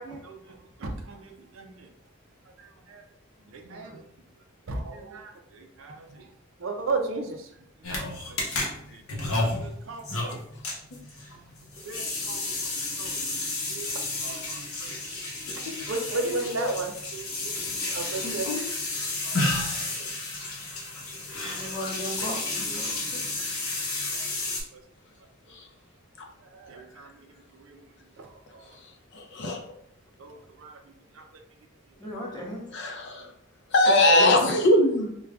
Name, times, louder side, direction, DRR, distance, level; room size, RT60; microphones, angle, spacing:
voice 1, 0.2-1.9 2.6-3.0 3.5-4.0 4.6-6.3 6.6-7.5 7.8-10.4 11.8-12.7 13.0-15.0 15.9-17.5 17.9-18.5 19.2-19.4 20.0-20.1 21.4-21.5 23.1-23.2 24.1-24.4 24.7-24.8 26.4-27.9 28.2-28.8 30.2-30.8 31.1-31.4 32.0-32.1 33.2-33.3, right 3 dB, 60° right, 4 dB, 0.5 m, -37 dB
voice 2, 3.7-4.0 21.4-23.3 32.0-32.7, equal, 20° left, -2 dB, 0.8 m, -37 dB
sound 1, 7.8-24.6, left 2 dB, 80° left, 0.8 m, -32 dB
voice 3, 16.2-16.9 18.2-18.7 23.4-23.5 25.5-25.7 29.1-29.6 32.7-33.3 33.7-35.1, left 1 dB, 55° left, 3 dB, 0.5 m, -23 dB
4.8 x 2.3 x 2.4 m, 0.71 s
head